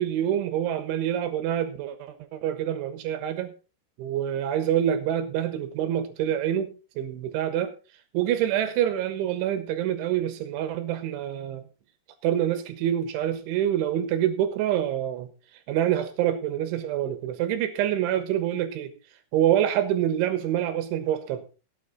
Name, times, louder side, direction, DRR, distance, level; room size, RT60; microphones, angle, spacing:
voice 1, 0.0-3.5 4.0-7.8 8.1-11.6 12.2-15.3 15.7-18.9 19.3-21.4, right 11 dB, 75° right, 10 dB, 3.6 m, -26 dB
16.5 x 8.9 x 4.0 m, 0.32 s
omnidirectional pair, 5.8 m